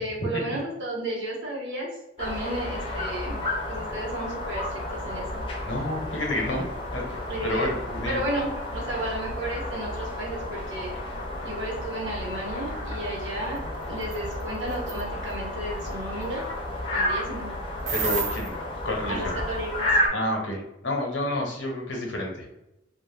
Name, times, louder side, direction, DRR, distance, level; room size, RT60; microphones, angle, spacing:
voice 1, 0.0-1.9 2.2-3.4 3.7-5.4 7.0-7.7 7.9-10.9 11.4-13.6 13.9-16.4 16.9-17.5 19.1-20.0, right 1 dB, 65° right, -4 dB, 0.9 m, -33 dB
sound 1, 2.2-20.1, left 1 dB, 25° left, 0.5 m, -32 dB
voice 2, 5.6-7.0 7.4-8.2 17.9-18.5 18.8-19.3 20.1-22.5, left 1 dB, 60° left, -1 dB, 0.7 m, -29 dB
sound 2, 14.0-14.2 14.7-15.0 17.9-18.5, right 6 dB, 35° right, 0.4 m, -29 dB
2.3 x 2.0 x 3.1 m, 0.91 s
head